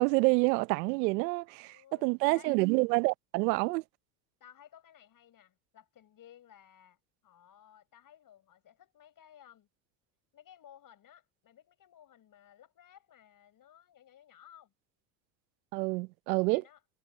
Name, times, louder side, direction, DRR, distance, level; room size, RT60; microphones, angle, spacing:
voice 1, 0.0-1.8 2.0-3.8 15.7-16.6, right 26 dB, 85° right, 0.8 m, -27 dB
voice 2, 1.4-2.6 4.4-9.7 10.3-14.7 16.4-16.8, left 10 dB, 40° left, 6.1 m, -58 dB
supercardioid pair, 100°, 49 cm